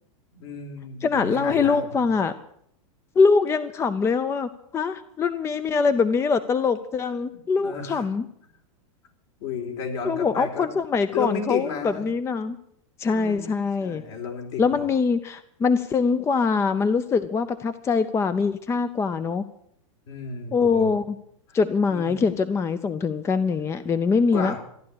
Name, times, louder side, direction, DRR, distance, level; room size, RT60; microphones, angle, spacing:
voice 1, 0.3-2.1 7.6-8.1 9.4-10.7 11.1-12.1 13.1-14.9 20.1-21.0 21.5-21.6 21.9-22.1 24.3-24.6, left 5 dB, 60° left, 3 dB, 4.3 m, -33 dB
voice 2, 1.0-2.3 3.2-8.2 10.0-12.6 13.0-14.0 14.6-19.4 20.5-21.2 21.5-24.5, left 5 dB, 15° left, 13 dB, 0.6 m, -23 dB
14.5 x 11.0 x 8.5 m, 0.72 s
hypercardioid pair, 135°, 17 cm